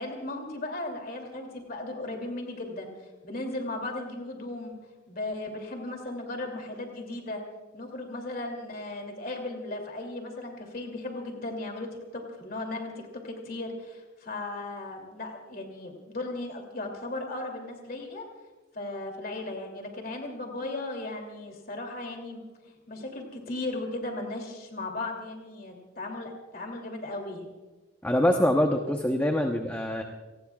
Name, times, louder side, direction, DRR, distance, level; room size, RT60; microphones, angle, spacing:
voice 1, 0.0-2.9 3.2-4.7 5.1-7.4 7.7-12.9 13.2-18.2 18.7-27.5, left 2 dB, 50° left, 2 dB, 2.8 m, -36 dB
voice 2, 28.0-30.0, left 1 dB, 10° left, 3 dB, 0.9 m, -24 dB
29.5 x 19.0 x 2.4 m, 1.2 s
head